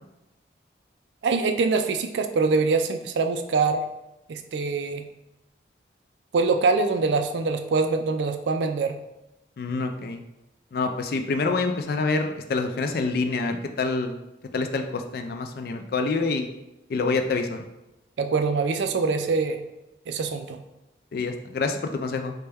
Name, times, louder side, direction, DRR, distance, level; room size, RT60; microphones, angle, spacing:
voice 1, 1.2-3.8 4.3-5.1 6.3-9.0 18.2-19.6 20.1-20.6, right 4 dB, 70° right, 6 dB, 0.3 m, -24 dB
voice 2, 9.6-10.2 10.7-14.2 14.5-16.5 16.9-17.7 21.1-22.3, left 3 dB, 55° left, 6 dB, 0.3 m, -27 dB
4.1 x 2.2 x 3.4 m, 0.95 s
head